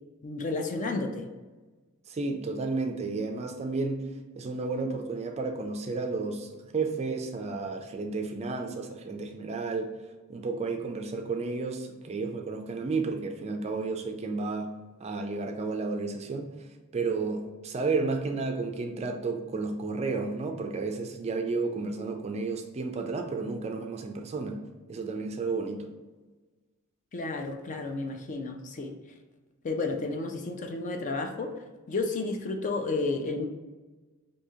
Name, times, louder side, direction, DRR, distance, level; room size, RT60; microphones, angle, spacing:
voice 1, 0.2-1.3 27.1-28.9 29.6-31.5 31.9-33.4, left 3 dB, 35° left, 4 dB, 0.4 m, -31 dB
voice 2, 2.1-4.1 4.4-9.9 10.3-14.7 15.0-16.5 16.9-24.6 24.9-25.9, right 3 dB, 30° right, 4 dB, 0.4 m, -32 dB
4.8 x 2.7 x 2.7 m, 1.3 s
head